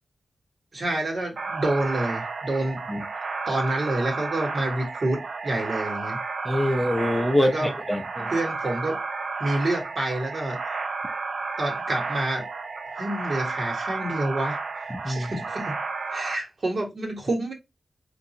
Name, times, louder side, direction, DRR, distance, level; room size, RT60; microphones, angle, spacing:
voice 1, 0.7-2.8 3.5-6.2 7.4-7.7 8.3-9.0 9.4-10.6 11.6-12.5 12.9-14.6 15.0-15.8 16.1-17.5, right 1 dB, 55° right, 1.4 m, -28 dB
sound 1, 1.4-16.4, right 4 dB, 70° right, 0.6 m, -32 dB
voice 2, 6.4-8.3 14.9-15.3, equal, 10° left, 0.6 m, -25 dB
3.8 x 2.6 x 2.8 m
wide cardioid pair, 85°, 0 cm